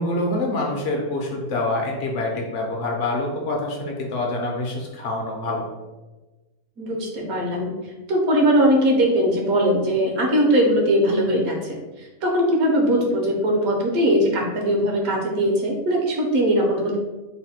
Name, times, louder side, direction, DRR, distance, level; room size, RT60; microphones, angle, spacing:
voice 1, 0.0-5.7, left 2 dB, 65° left, 0 dB, 0.9 m, -26 dB
voice 2, 6.8-7.7 8.1-17.0, equal, 80° right, 0 dB, 1.3 m, -20 dB
3.2 x 2.1 x 4.1 m, 1.1 s
omnidirectional pair, 1.5 m